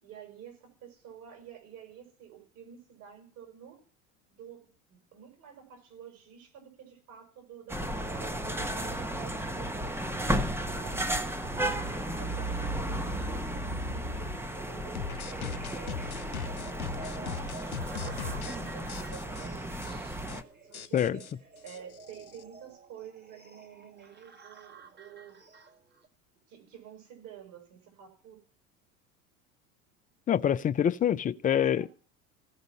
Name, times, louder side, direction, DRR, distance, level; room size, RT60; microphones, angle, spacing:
voice 1, 0.0-3.8 4.3-11.0 11.4-16.8 17.2-20.1 20.6-21.3 21.6-25.4 26.5-28.4 31.5-31.9, right 8 dB, 50° right, 5.5 m, -50 dB
sound 1, 7.7-20.4, right 1 dB, 5° right, 1.1 m, -34 dB
sound 2, 11.4-26.1, right 2 dB, 25° right, 2.0 m, -47 dB
sound 3, 15.0-18.6 18.9-19.5 19.8-19.9 20.2-20.4 20.7-22.4, left 6 dB, 90° left, 0.6 m, -39 dB
voice 2, 30.3-31.9, left 9 dB, 20° left, 0.5 m, -25 dB
16.0 x 5.3 x 9.8 m
figure-of-eight pair, 70°, 41 cm